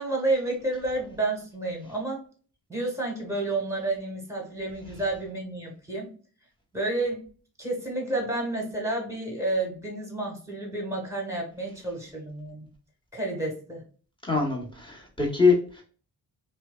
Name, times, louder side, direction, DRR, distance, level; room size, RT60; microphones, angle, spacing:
voice 1, 0.0-2.2 2.7-6.1 6.7-7.2 7.6-12.7 13.1-13.8, right 2 dB, 5° right, 0 dB, 1.4 m, -30 dB
voice 2, 14.2-15.8, left 4 dB, 10° left, -2 dB, 1.2 m, -24 dB
2.5 x 2.2 x 2.3 m, 0.41 s
supercardioid pair, 45°, 45 cm